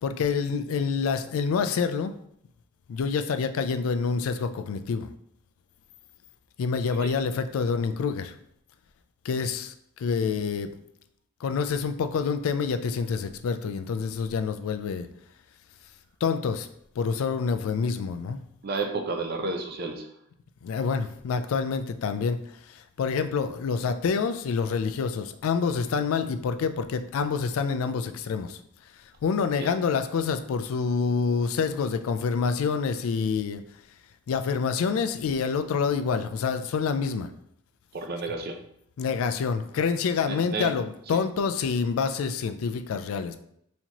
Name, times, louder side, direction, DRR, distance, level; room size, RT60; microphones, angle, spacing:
voice 1, 0.0-2.1 2.9-5.1 6.6-8.3 9.2-9.7 10.0-10.7 11.4-15.1 16.2-16.7 17.0-18.4 20.6-22.4 22.6-28.6 29.2-33.6 34.3-37.3 39.0-43.4, left 5 dB, 70° left, 10 dB, 0.3 m, -27 dB
voice 2, 18.6-20.1 29.6-29.7 37.9-38.6 40.3-40.7 41.1-41.2, right 3 dB, 45° right, 4 dB, 0.5 m, -31 dB
4.3 x 2.9 x 2.8 m, 0.73 s
head